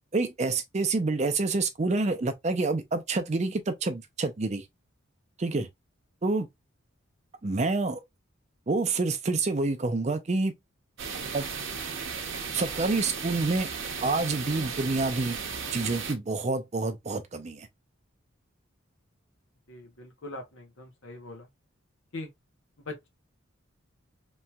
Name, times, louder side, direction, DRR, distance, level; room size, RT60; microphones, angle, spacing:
voice 1, 0.1-4.6 5.4-5.7 6.2-6.5 7.4-8.0 8.7-10.5 11.3-11.5 12.5-13.7 14.0-15.4 15.7-17.7, right 3 dB, 35° right, 0.5 m, -27 dB
sound 1, 11.0-16.1, right 5 dB, 70° right, 0.8 m, -35 dB
voice 2, 19.7-21.5 22.1-22.3 22.8-23.1, left 2 dB, 75° left, 0.9 m, -41 dB
3.0 x 2.8 x 2.2 m
head